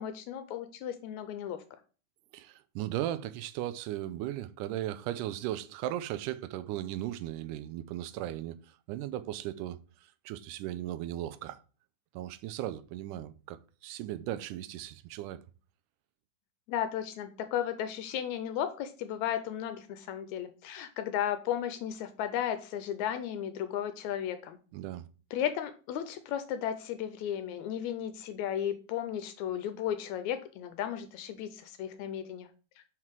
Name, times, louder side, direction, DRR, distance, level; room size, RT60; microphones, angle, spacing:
voice 1, 0.0-1.6 16.7-24.6 25.3-32.5, left 10 dB, 80° left, 1.8 m, -34 dB
voice 2, 2.3-8.6 8.9-9.8 10.3-11.6 12.1-15.4 24.7-25.1, right 13 dB, 85° right, 2.1 m, -37 dB
5.8 x 4.7 x 4.5 m
omnidirectional pair, 3.6 m